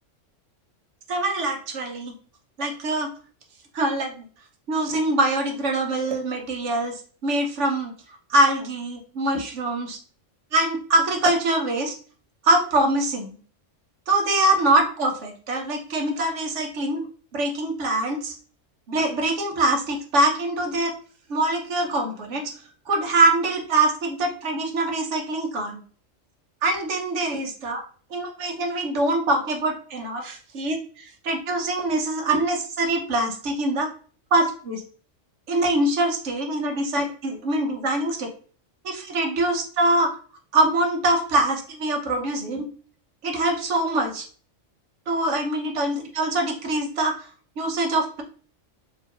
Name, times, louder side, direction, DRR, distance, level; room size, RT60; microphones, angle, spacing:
voice 1, 1.1-2.1 2.6-3.1 3.7-4.1 4.7-7.9 8.3-10.0 10.5-11.9 12.4-13.4 14.1-17.0 17.3-18.4 18.9-20.9 21.3-22.5 22.9-25.8 26.6-27.8 28.1-33.9 34.3-34.8 35.5-38.3 38.8-40.1 40.5-42.7 43.2-44.2 45.1-47.3 47.6-48.2, right 2 dB, 70° right, 3 dB, 1.2 m, -23 dB
4.5 x 3.0 x 2.9 m, 0.41 s
omnidirectional pair, 1.3 m